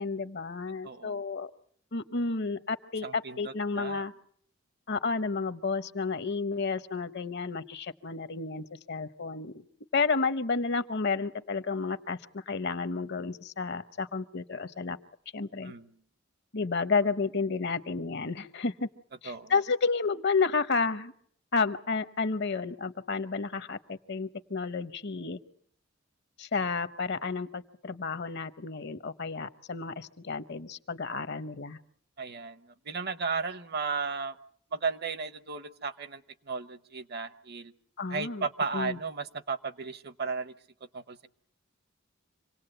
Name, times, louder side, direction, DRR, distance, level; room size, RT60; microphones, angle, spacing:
voice 1, 0.0-1.5 1.9-4.1 4.9-9.5 9.9-15.0 15.3-15.7 16.5-18.9 19.2-21.1 21.5-25.4 26.4-31.8 38.0-38.5 38.7-39.0, left 4 dB, 55° left, 12 dB, 0.9 m, -31 dB
voice 2, 0.8-1.2 3.0-4.0 15.6-15.9 19.2-19.5 32.2-34.4 34.7-37.7 38.1-40.5 40.9-41.3, right 4 dB, 50° right, 13 dB, 0.9 m, -35 dB
26.5 x 18.5 x 7.9 m, 0.64 s
head